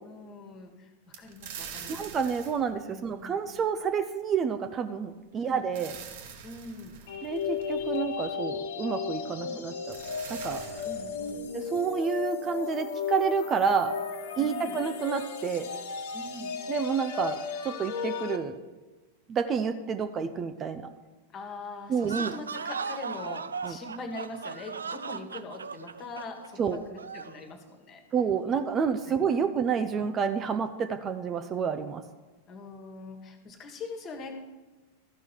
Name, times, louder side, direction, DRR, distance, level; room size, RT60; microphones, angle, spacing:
voice 1, 0.0-2.0 2.9-3.4 5.3-5.6 6.4-7.0 9.4-9.6 10.8-11.4 14.4-14.8 16.1-16.5 21.3-28.0 28.4-28.5 29.0-29.2 29.4-29.5 32.5-34.4, left 3 dB, 30° left, 5 dB, 1.6 m, -42 dB
sound 1, 1.1-3.8 5.3-8.4 9.5-9.6 9.9-11.7, right 7 dB, 55° right, 1.3 m, -45 dB
voice 2, 1.9-5.9 7.2-9.9 10.3-10.6 11.5-13.9 14.4-15.7 16.7-17.4 17.6-18.5 19.3-20.9 21.9-22.3 23.6-23.8 26.6-26.8 28.1-32.0, right 6 dB, 25° right, 8 dB, 0.6 m, -29 dB
sound 2, 7.1-18.4, left 6 dB, 55° left, 1.0 m, -35 dB
sound 3, 22.0-27.4, right 5 dB, 70° right, 0.4 m, -37 dB
14.0 x 5.4 x 6.2 m, 1.2 s
figure-of-eight pair, 90°, 0 cm